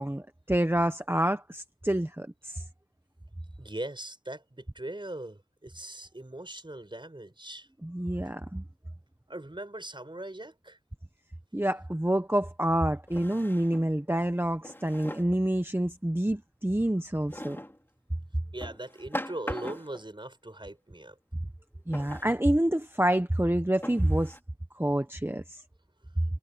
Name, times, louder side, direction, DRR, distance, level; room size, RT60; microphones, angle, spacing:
voice 1, 0.0-2.6 7.8-8.6 11.5-17.6 21.9-24.4 24.7-25.6, right 1 dB, 15° right, 1.2 m, -27 dB
voice 2, 3.6-7.7 9.3-10.8 18.5-21.2, right 1 dB, 30° right, 5.1 m, -40 dB
Drawer open or close, 11.7-11.8 13.1-13.9 14.6-15.4 17.3-17.8 18.6-20.1 21.9-22.4 23.1-23.2 23.8-24.4, equal, 15° left, 3.2 m, -40 dB
wide cardioid pair, 45°, 15 cm